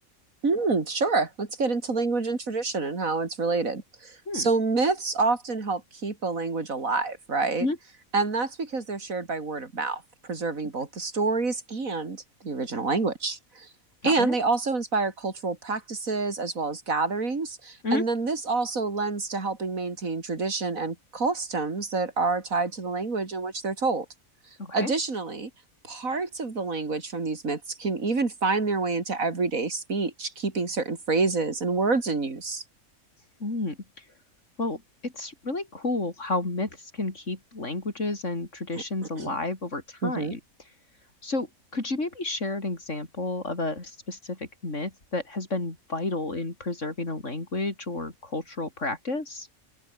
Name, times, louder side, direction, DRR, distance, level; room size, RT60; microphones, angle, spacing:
voice 1, 0.4-7.7 8.1-13.7 14.0-24.1 24.7-25.5 25.8-32.6 39.2-39.4 40.0-40.4, right 3 dB, 70° right, 3.4 m, -27 dB
voice 2, 14.0-14.4 17.8-18.0 24.6-24.9 33.4-33.8 34.6-40.4 41.2-41.5 41.7-49.5, left 2 dB, 55° left, 5.1 m, -31 dB
open air
omnidirectional pair, 1.5 m